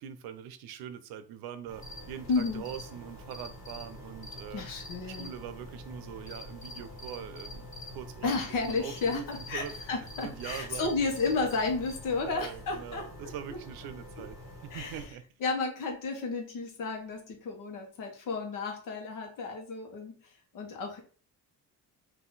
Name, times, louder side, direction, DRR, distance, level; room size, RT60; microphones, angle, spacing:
voice 1, 0.0-4.6 5.1-8.3 8.7-9.7 10.2-11.1 11.5-11.6 12.2-14.4 14.6-15.3, right 9 dB, 75° right, 11 dB, 0.6 m, -42 dB
sound 1, 1.7-15.1, equal, 10° right, 1.1 m, -47 dB
sound 2, 1.8-12.0, left 2 dB, 20° left, 0.6 m, -48 dB
voice 2, 2.3-2.7 4.5-5.3 8.2-13.3 14.2-14.3 14.7-15.0 15.4-21.0, left 4 dB, 55° left, 3 dB, 1.2 m, -32 dB
3.8 x 2.7 x 3.9 m, 0.41 s
cardioid pair, 180°, 37 cm